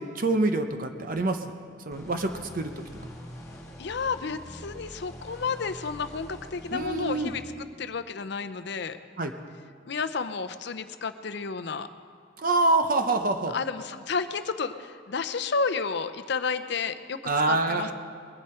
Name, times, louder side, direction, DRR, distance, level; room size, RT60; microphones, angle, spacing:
voice 1, 0.0-1.4 1.9-2.7 6.7-7.3 9.2-9.3 12.4-13.5 17.3-17.9, right 2 dB, 45° right, 6 dB, 0.7 m, -25 dB
sound 1, 1.9-7.4, equal, 15° left, 1.8 m, -45 dB
voice 2, 3.8-7.4 7.8-9.0 9.9-11.9 13.5-17.2 17.5-17.9, left 5 dB, 60° left, 9 dB, 0.6 m, -31 dB
21.5 x 11.0 x 4.4 m, 2.3 s
head